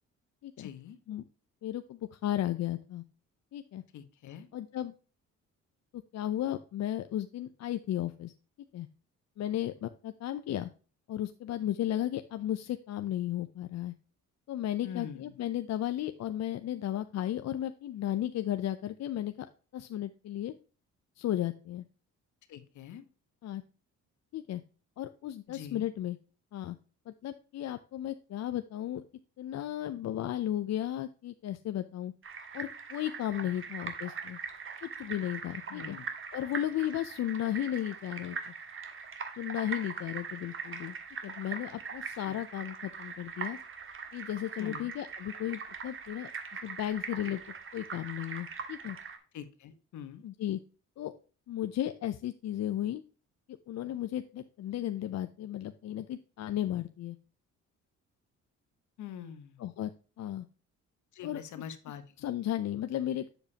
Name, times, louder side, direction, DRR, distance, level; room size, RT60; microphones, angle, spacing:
voice 1, 0.6-1.0 3.9-4.5 14.8-15.3 22.5-23.0 25.5-25.9 33.4-33.5 35.7-36.1 42.3-42.4 44.6-44.9 49.3-50.2 59.0-59.6 61.1-62.3, left 8 dB, 75° left, 10 dB, 1.3 m, -44 dB
voice 2, 1.6-3.0 3.5-3.8 4.5-4.9 5.9-8.3 8.7-8.9 9.4-10.7 11.1-13.9 14.5-19.5 19.7-20.5 21.2-21.8 23.4-23.6 24.3-24.6 25.0-26.2 26.5-26.8 27.1-29.0 29.4-32.1 32.5-34.4 34.8-36.0 36.3-38.5 39.3-40.9 41.2-43.6 44.1-46.3 46.6-47.4 47.7-49.0 50.2-50.6 51.0-51.1 51.5-53.0 53.7-57.2 59.6-59.9 60.2-60.5 61.2-61.4 62.2-63.3, left 12 dB, 60° left, 10 dB, 0.6 m, -34 dB
sound 1, 32.2-49.2, right 5 dB, 45° right, 1.6 m, -42 dB
8.0 x 7.0 x 2.8 m, 0.37 s
cardioid pair, 90°, 30 cm